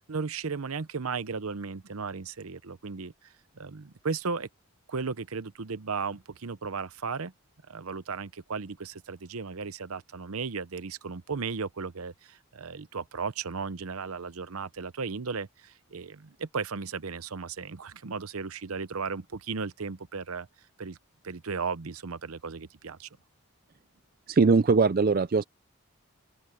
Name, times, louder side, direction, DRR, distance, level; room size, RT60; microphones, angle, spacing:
voice 1, 0.0-4.5 4.9-7.3 7.7-20.5 20.8-21.0 21.2-23.1, right 5 dB, 90° right, 0.8 m, -35 dB
voice 2, 24.3-25.4, right 4 dB, 40° right, 0.4 m, -21 dB
open air
head